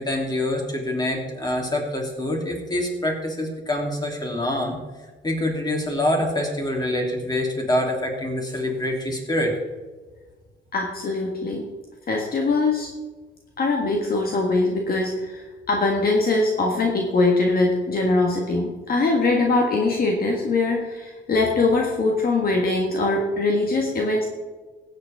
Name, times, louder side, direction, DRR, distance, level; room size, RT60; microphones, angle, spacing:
voice 1, 0.0-4.8 5.2-9.6, left 1 dB, 20° left, 0 dB, 3.3 m, -25 dB
voice 2, 10.7-11.7 12.1-12.9 13.6-24.3, left 3 dB, 50° left, 0 dB, 1.7 m, -22 dB
16.0 x 8.5 x 3.6 m, 1.3 s
cardioid pair, 90°, 20 cm